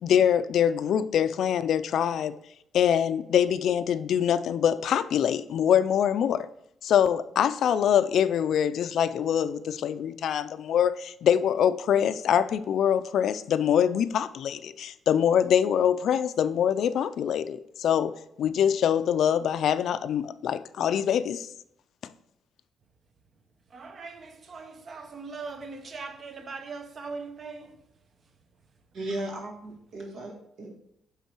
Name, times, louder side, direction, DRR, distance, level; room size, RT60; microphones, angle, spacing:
voice 1, 0.0-2.3 2.7-6.5 6.8-21.5, left 9 dB, 70° left, 0.4 m, -24 dB
voice 2, 23.7-27.8, right 4 dB, 45° right, 0.8 m, -40 dB
voice 3, 28.9-30.7, right 1 dB, 70° right, 1.9 m, -36 dB
8.2 x 3.7 x 4.6 m
cardioid pair, 90°, 0 cm